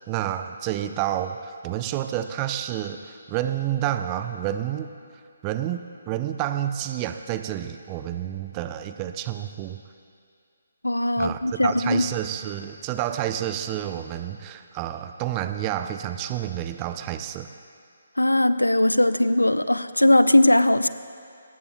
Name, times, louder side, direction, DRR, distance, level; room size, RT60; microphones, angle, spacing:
voice 1, 0.1-4.9 5.4-9.8 11.2-17.5, right 11 dB, 20° right, 9 dB, 0.5 m, -29 dB
voice 2, 10.8-12.0 18.2-20.9, left 1 dB, 80° left, 13 dB, 0.5 m, -19 dB
21.5 x 18.5 x 2.3 m, 2.3 s
figure-of-eight pair, 140°, 0 cm